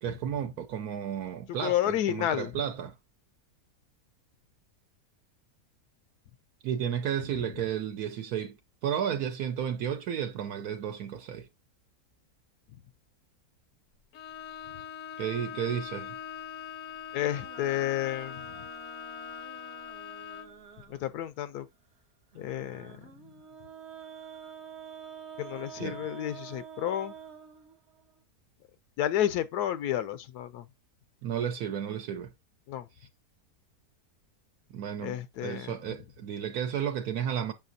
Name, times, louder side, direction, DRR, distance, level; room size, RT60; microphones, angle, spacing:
voice 1, 0.0-2.9 6.6-8.6 8.8-11.5 15.2-16.2 25.8-26.0 31.2-32.3 33.0-33.1 34.7-37.5, right 9 dB, 75° right, 1.2 m, -33 dB
voice 2, 1.6-2.5 17.1-18.4 20.9-21.7 22.3-23.0 25.4-27.1 29.0-30.6 32.7-32.9 35.0-35.8, left 12 dB, 85° left, 1.1 m, -31 dB
Bowed string instrument, 14.1-20.6, left 9 dB, 65° left, 0.8 m, -42 dB
sound 1, 17.2-21.2 22.3-28.1, right 8 dB, 55° right, 0.9 m, -47 dB
6.6 x 5.9 x 2.6 m
omnidirectional pair, 1.6 m